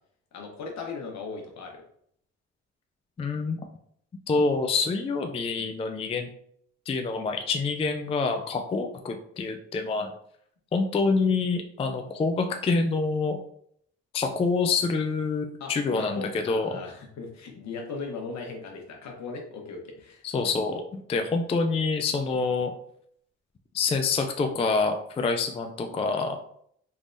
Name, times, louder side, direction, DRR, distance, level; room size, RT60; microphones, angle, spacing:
voice 1, 0.3-1.8 15.6-20.3, left 4 dB, 65° left, 1 dB, 1.0 m, -38 dB
voice 2, 3.2-3.6 4.3-6.3 6.9-10.1 10.7-13.4 14.1-16.7 20.2-22.7 23.7-26.4, left 4 dB, 20° left, 4 dB, 0.3 m, -26 dB
3.4 x 3.2 x 2.6 m, 0.67 s
cardioid pair, 90°, 30 cm